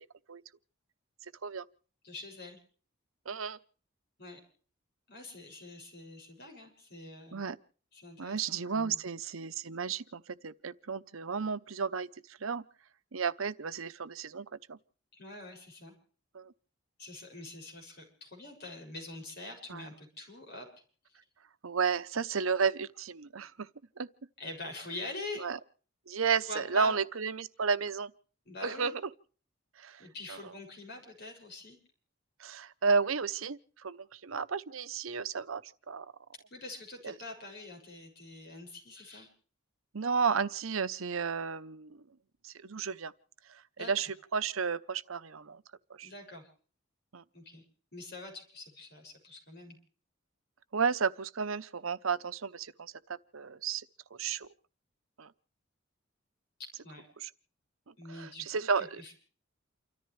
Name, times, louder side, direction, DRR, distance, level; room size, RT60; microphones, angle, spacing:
voice 1, 2.0-2.6 4.2-4.4 5.1-7.4 7.9-9.0 15.1-15.9 17.0-20.7 21.1-21.2 24.4-25.5 26.5-27.0 28.4-28.9 30.0-31.8 36.5-39.3 43.8-43.9 46.0-46.5 47.3-47.6 47.9-49.8 56.6-57.1 58.0-59.1, left 2 dB, 50° left, 6.9 m, -45 dB
voice 2, 3.3-3.6 7.3-7.6 8.2-12.1 12.4-12.6 13.1-14.8 16.3-16.5 19.7-19.9 21.6-23.7 24.0-24.1 25.4-25.6 26.1-28.1 28.6-28.9 29.8-30.0 30.3-30.4 32.4-36.0 37.0-37.1 39.9-42.0 42.4-43.1 43.8-45.6 46.0-46.1 47.1-47.2 50.7-52.9 53.3-53.8 54.1-54.5 55.2-55.3 57.2-57.3 58.1-59.0, right 5 dB, 85° right, 0.8 m, -32 dB
29.0 x 14.0 x 3.3 m
head